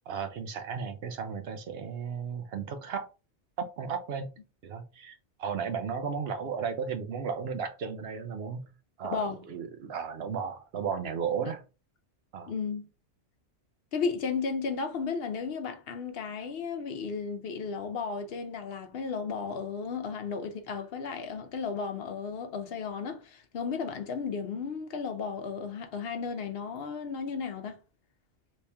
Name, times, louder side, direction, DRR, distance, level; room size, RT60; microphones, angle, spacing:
voice 1, 0.1-3.1 3.6-4.3 4.6-8.7 9.0-11.6 12.3-12.5, right 6 dB, 65° right, 0.8 m, -34 dB
voice 2, 9.1-9.4 12.5-12.9 13.9-27.8, left 5 dB, 60° left, 0.8 m, -34 dB
3.1 x 2.8 x 3.3 m
omnidirectional pair, 1.2 m